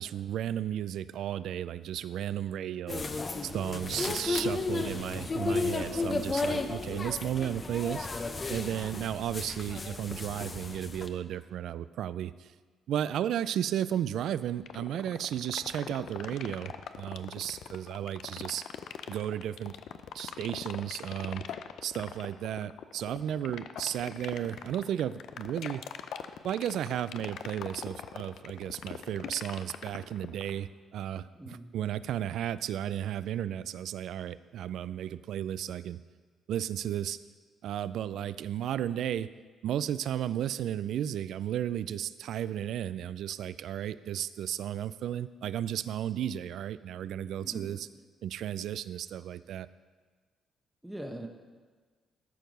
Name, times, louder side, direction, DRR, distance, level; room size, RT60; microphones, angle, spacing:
voice 1, 0.0-8.1 8.5-12.5 12.9-18.7 19.1-19.8 20.1-21.4 21.8-25.9 26.4-36.0 36.5-37.2 37.6-39.3 39.6-47.9 48.2-49.7, right 10 dB, 75° right, 16 dB, 0.3 m, -34 dB
sound 1, 2.9-11.1, left 3 dB, 30° left, 0.7 m, -33 dB
sound 2, 14.6-30.6, left 9 dB, 75° left, 0.4 m, -41 dB
voice 2, 31.4-31.7 47.4-47.7 50.8-51.3, right 1 dB, 5° right, 2 dB, 0.9 m, -41 dB
13.5 x 4.6 x 5.3 m, 1.4 s
cardioid pair, 90°, 0 cm